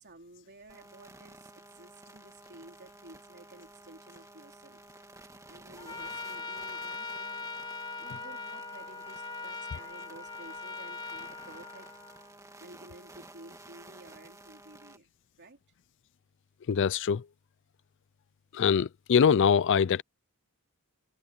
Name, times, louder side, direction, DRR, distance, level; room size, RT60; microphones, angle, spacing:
voice 1, 0.0-4.8 5.5-7.5 8.0-11.9 12.6-15.1 15.4-15.6, right 2 dB, 50° right, 3.2 m, -53 dB
sound 1, 0.7-15.0, right 2 dB, 15° right, 2.5 m, -53 dB
Trumpet, 5.8-12.3, left 3 dB, 20° left, 2.7 m, -41 dB
voice 2, 16.7-17.2 18.5-20.0, left 7 dB, 55° left, 0.4 m, -23 dB
head